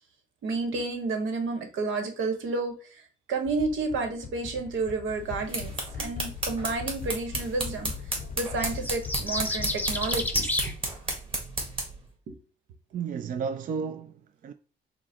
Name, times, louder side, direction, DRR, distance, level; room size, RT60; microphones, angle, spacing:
voice 1, 0.4-10.7 12.3-12.4, right 3 dB, 80° right, 1.1 m, -31 dB
sound 1, 3.4-10.3, left 7 dB, 45° left, 0.6 m, -41 dB
sound 2, 5.2-12.0, right 2 dB, 25° right, 1.6 m, -33 dB
sound 3, 8.6-10.7, left 2 dB, 10° left, 0.7 m, -30 dB
voice 2, 12.9-14.5, right 6 dB, 45° right, 0.4 m, -33 dB
4.7 x 2.1 x 4.3 m
cardioid pair, 90°, 20 cm